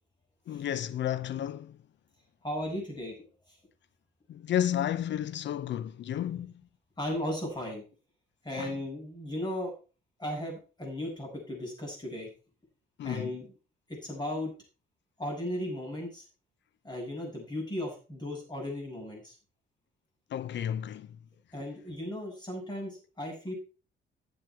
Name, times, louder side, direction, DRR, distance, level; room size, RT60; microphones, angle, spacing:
voice 1, 0.5-1.8 4.3-6.5 8.6-8.8 13.0-13.4 20.3-21.2, left 10 dB, 65° left, 0.7 m, -32 dB
voice 2, 2.4-3.1 6.3-6.4 7.0-7.8 8.4-9.7 10.2-12.3 13.0-13.5 13.9-14.5 15.2-16.2 16.8-19.3 21.5-23.5, left 1 dB, 20° left, 7.6 m, -36 dB
11.5 x 7.6 x 4.7 m
cardioid pair, 90°, 20 cm